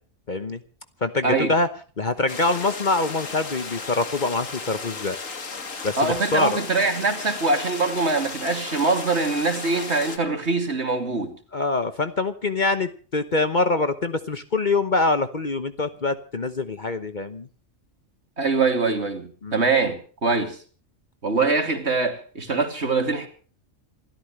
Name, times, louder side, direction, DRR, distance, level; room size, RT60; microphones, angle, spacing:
voice 1, 0.3-0.6 1.0-1.7 2.0-5.2 5.8-6.6 11.5-17.5 19.4-19.6, left 3 dB, 40° left, 1.1 m, -24 dB
voice 2, 1.2-1.5 6.0-11.3 18.4-20.6 21.2-23.3, right 3 dB, 55° right, 3.0 m, -23 dB
sound 1, 2.3-10.2, left 4 dB, 85° left, 2.3 m, -35 dB
27.0 x 13.5 x 3.2 m
omnidirectional pair, 1.3 m